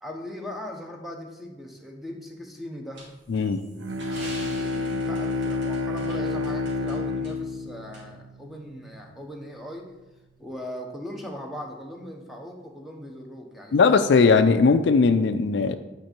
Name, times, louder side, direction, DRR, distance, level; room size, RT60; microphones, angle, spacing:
voice 1, 0.0-3.0 4.1-9.9 10.4-14.1, left 1 dB, ahead, 1 dB, 0.9 m, -39 dB
sound 1, 2.9-6.9 7.2-7.3 7.9-8.0, right 1 dB, 70° right, 2.6 m, -44 dB
voice 2, 3.3-3.6 13.7-15.8, left 4 dB, 65° left, 10 dB, 0.4 m, -19 dB
Bowed string instrument, 3.8-8.8, left 3 dB, 85° right, 0.5 m, -29 dB
9.4 x 4.5 x 4.4 m, 1.1 s
head